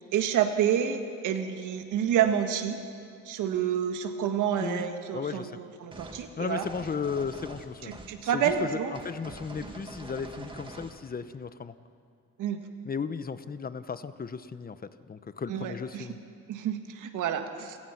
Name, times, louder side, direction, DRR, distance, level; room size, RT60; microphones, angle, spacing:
voice 1, 0.1-2.8 3.2-6.7 7.8-8.9 9.6-9.7 12.4-12.6 15.5-16.1 16.5-17.8, right 9 dB, 85° right, 7 dB, 1.7 m, -29 dB
voice 2, 5.1-5.6 6.4-7.9 8.3-11.8 12.8-14.8 15.1-16.2, left 5 dB, 30° left, 13 dB, 1.0 m, -35 dB
sound 1, 5.9-6.3 6.6-8.2 8.4-8.6 8.9-11.0, right 2 dB, 15° right, 2.2 m, -44 dB
28.5 x 17.5 x 5.9 m, 2.4 s
cardioid pair, 90°, 30 cm